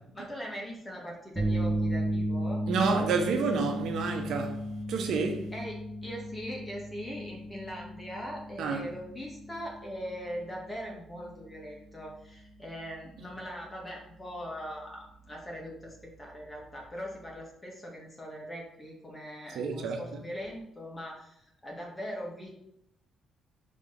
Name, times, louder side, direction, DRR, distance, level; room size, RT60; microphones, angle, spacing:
voice 1, 0.1-2.6 5.5-22.5, equal, 15° left, 2.1 m, -41 dB
sound 1, 1.4-17.3, right 1 dB, 10° right, 1.5 m, -36 dB
voice 2, 2.7-4.6 4.9-5.5 8.6-8.9 19.5-20.2, right 4 dB, 75° right, 1.0 m, -29 dB
5.2 x 3.6 x 5.2 m
cardioid pair, 90°, 0 cm